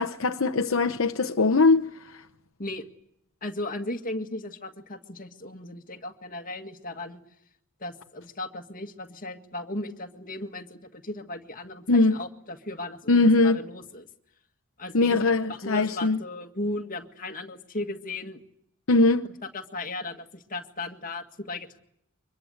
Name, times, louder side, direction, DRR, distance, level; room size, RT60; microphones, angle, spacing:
voice 1, 0.0-2.2 11.9-12.2 13.1-13.6 14.9-16.2 18.9-19.3, left 3 dB, 70° left, 0.9 m, -21 dB
voice 2, 3.4-7.2 7.8-14.1 14.8-18.4 19.5-21.8, left 2 dB, 40° left, 1.9 m, -36 dB
24.5 x 22.0 x 8.0 m
head